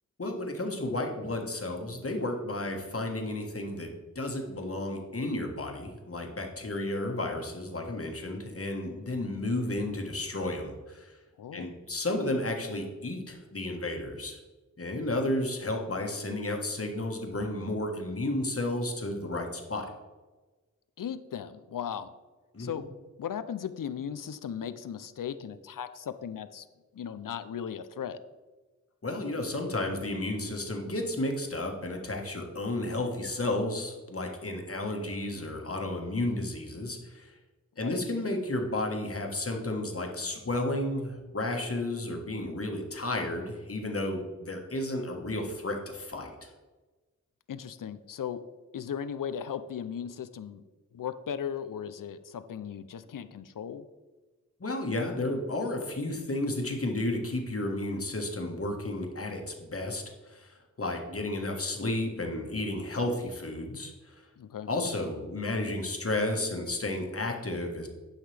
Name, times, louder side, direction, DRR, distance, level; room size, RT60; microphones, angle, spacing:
voice 1, 0.2-3.9 4.1-11.1 11.5-14.4 14.8-19.9 22.5-22.7 29.0-37.3 37.8-46.5 54.6-64.2 64.7-67.9, left 2 dB, 45° left, 2 dB, 1.5 m, -32 dB
voice 2, 11.4-11.7 21.0-22.1 22.6-22.8 23.2-26.7 26.9-28.2 37.8-38.0 47.5-48.4 48.7-50.6 50.9-53.9 64.4-64.7, left 8 dB, 85° left, 12 dB, 0.5 m, -37 dB
11.0 x 5.7 x 3.4 m, 1.3 s
wide cardioid pair, 65°, 32 cm